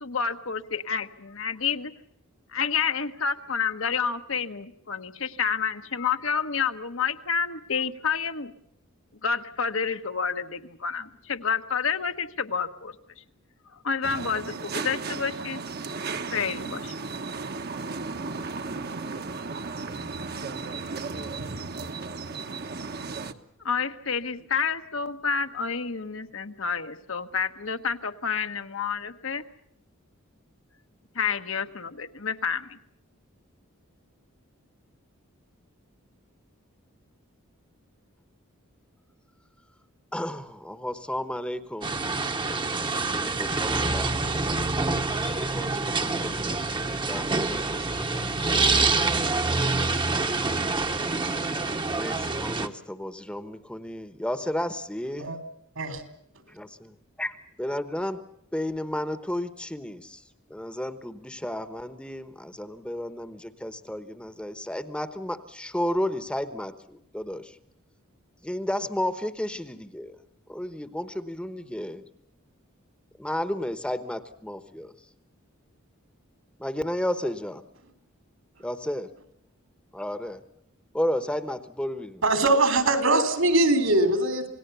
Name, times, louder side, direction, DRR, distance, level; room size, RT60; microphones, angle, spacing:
voice 1, 0.0-1.9 2.5-8.5 9.2-12.9 13.8-15.6 16.3-16.9 23.6-29.4 31.1-32.8, left 6 dB, 65° left, 8 dB, 1.2 m, -29 dB
sound 1, 14.0-23.3, right 4 dB, 50° right, 1.1 m, -35 dB
voice 2, 40.1-41.9 42.9-44.6 45.1-48.6 52.0-55.3 56.5-58.2 58.5-60.2 60.5-67.6 68.4-70.2 70.5-72.0 73.2-74.9 76.6-77.6 78.6-79.1 79.9-80.4 80.9-82.2, left 1 dB, 5° left, 11 dB, 1.0 m, -33 dB
sound 2, 41.8-52.7, right 3 dB, 20° right, 1.0 m, -26 dB
voice 3, 82.2-84.5, right 2 dB, 75° right, 8 dB, 3.5 m, -22 dB
28.0 x 18.5 x 6.9 m, 0.73 s
head